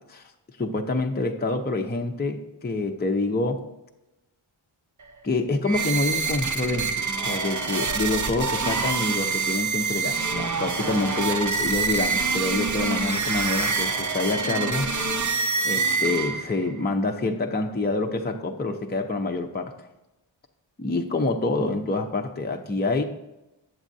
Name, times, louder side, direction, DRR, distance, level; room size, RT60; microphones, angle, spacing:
voice 1, 0.6-3.6 5.2-14.9 15.6-19.7 20.8-23.0, left 2 dB, 20° left, 3 dB, 0.6 m, -27 dB
sound 1, 5.6-16.7, right 4 dB, 40° right, 0.7 m, -26 dB
8.1 x 7.3 x 2.7 m, 0.95 s
wide cardioid pair, 55°, 47 cm